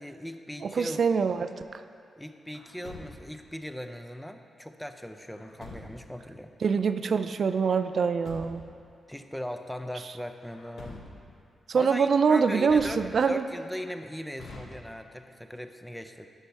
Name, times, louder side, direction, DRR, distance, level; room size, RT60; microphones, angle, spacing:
voice 1, 0.0-1.0 2.2-6.5 9.1-11.0 11.7-13.0 13.3-16.3, equal, 5° left, 7 dB, 0.5 m, -39 dB
voice 2, 0.6-1.8 6.6-8.7 11.7-13.4, right 5 dB, 60° right, 10 dB, 0.3 m, -24 dB
Truck, 2.5-3.5 5.3-6.2 7.8-8.8 10.4-11.5 12.6-13.5 14.4-15.2, left 3 dB, 85° left, 0.9 m, -46 dB
12.0 x 5.4 x 3.4 m, 2.4 s
cardioid pair, 95°, 0 cm